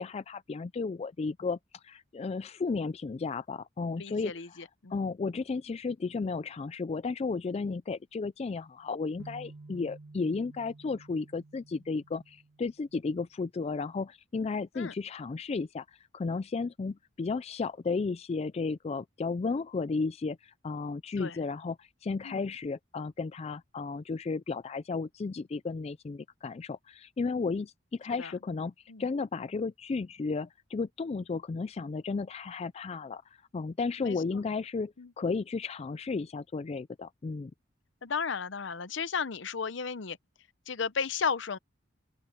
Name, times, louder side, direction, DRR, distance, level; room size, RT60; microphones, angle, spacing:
voice 1, 0.0-4.6 4.9-28.7 29.0-37.5, left 4 dB, 30° left, 0.3 m, -34 dB
voice 2, 4.0-5.0 14.7-14.9 21.2-21.4 22.2-22.4 28.2-28.3 28.9-29.0 34.0-34.2 35.0-35.1 38.0-40.2 40.7-41.6, left 5 dB, 65° left, 0.7 m, -34 dB
sound 1, 9.2-13.2, right 2 dB, 85° right, 1.1 m, -52 dB
open air
head